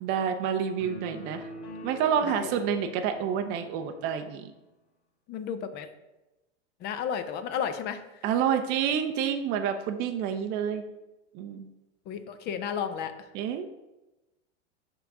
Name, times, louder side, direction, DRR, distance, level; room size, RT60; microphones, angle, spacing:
voice 1, 0.0-1.5 1.8-4.4 8.2-10.8 11.3-11.7 13.3-13.7, right 8 dB, 30° right, 5 dB, 0.4 m, -28 dB
sound 1, 0.8-4.3, left 1 dB, 65° left, 2.1 m, -44 dB
voice 2, 2.3-2.6 5.3-5.9 6.8-8.0 12.1-13.1, left 7 dB, 30° left, 10 dB, 0.5 m, -33 dB
5.7 x 3.8 x 5.8 m, 1.0 s
supercardioid pair, 130°, 36 cm